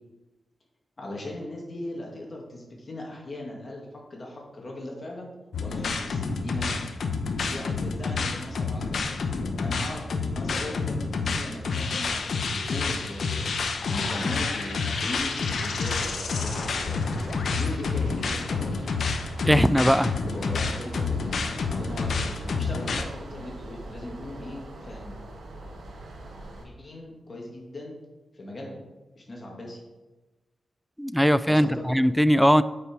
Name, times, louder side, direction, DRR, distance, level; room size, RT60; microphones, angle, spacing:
voice 1, 1.0-5.3 5.6-6.9 7.5-9.0 9.4-13.5 13.9-17.1 17.6-18.8 20.2-21.2 21.7-22.2 22.4-25.2 25.9-26.0 26.5-28.0 28.3-28.8 29.1-29.8 31.5-31.8, left 1 dB, 40° left, -1 dB, 2.3 m, -38 dB
sound 1, 5.5-23.0, left 4 dB, 75° left, 0.8 m, -29 dB
CP Insect Helicopter, 13.8-21.1, left 4 dB, 90° left, 1.3 m, -38 dB
sound 2, 15.7-26.7, right 1 dB, 75° right, 1.3 m, -42 dB
voice 2, 19.5-20.1 31.0-32.6, equal, ahead, 15 dB, 0.3 m, -20 dB
8.2 x 5.6 x 4.6 m, 1.1 s
cardioid pair, 80°, 0 cm